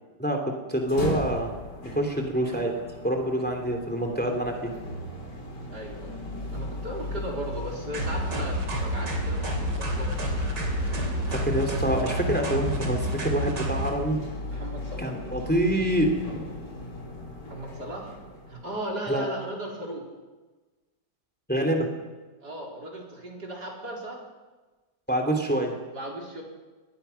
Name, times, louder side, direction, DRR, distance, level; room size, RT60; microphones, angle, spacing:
sound 1, 0.7-18.9, left 2 dB, 80° left, 4.4 m, -36 dB
voice 1, 0.7-1.5 1.8-2.7 3.0-4.7 11.3-14.2 15.0-16.4 19.1-19.3 21.5-21.9 25.1-25.7, right 1 dB, 5° left, 3 dB, 2.9 m, -26 dB
voice 2, 5.7-6.2 6.5-10.5 14.5-15.1 17.5-18.2 18.5-20.1 22.4-24.2 25.9-26.4, right 1 dB, 70° right, -1 dB, 4.8 m, -36 dB
sound 2, 7.9-13.9, right 1 dB, 90° right, 4.0 m, -29 dB
23.5 x 20.5 x 5.9 m, 1.3 s
omnidirectional pair, 1.8 m